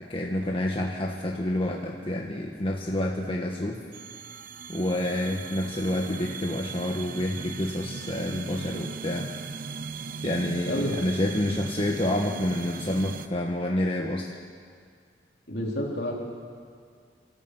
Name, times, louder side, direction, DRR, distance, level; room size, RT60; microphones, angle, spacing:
voice 1, 0.1-3.8 4.7-9.3 10.2-14.3, left 1 dB, 30° left, 0 dB, 1.4 m, -28 dB
sound 1, 3.9-13.3, right 5 dB, 55° right, 0.7 m, -38 dB
voice 2, 10.6-11.1 15.5-16.1, left 1 dB, 65° left, -2 dB, 4.2 m, -29 dB
28.0 x 13.5 x 8.0 m, 2.1 s
head